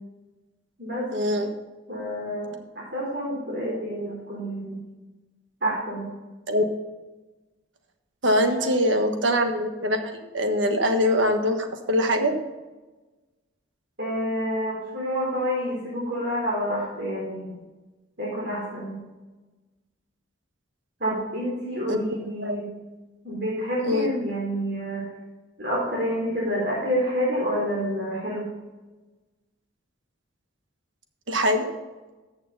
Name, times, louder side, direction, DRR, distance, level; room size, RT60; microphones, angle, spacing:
voice 1, 1.1-1.5 6.5-6.7 8.2-12.3 21.9-22.0 22.4-22.6 23.8-24.1 31.3-31.7, equal, 75° right, 6 dB, 1.4 m, -23 dB
voice 2, 1.9-4.8 5.6-6.1 8.6-8.7 14.0-17.5 18.2-19.0 21.0-22.6 23.2-25.0 25.6-28.5, equal, 55° right, -6 dB, 3.8 m, -28 dB
14.0 x 6.7 x 4.0 m, 1.2 s
head